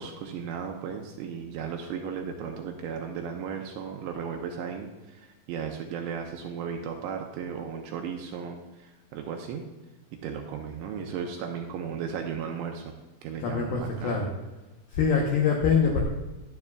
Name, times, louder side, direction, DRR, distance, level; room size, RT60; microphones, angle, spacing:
voice 1, 0.0-9.6 10.2-13.0 13.2-14.2, right 7 dB, 80° right, 3 dB, 2.8 m, -35 dB
voice 2, 13.4-14.3 14.9-16.0, left 5 dB, 85° left, -1 dB, 2.1 m, -24 dB
12.5 x 10.5 x 2.4 m, 1.1 s
omnidirectional pair, 5.8 m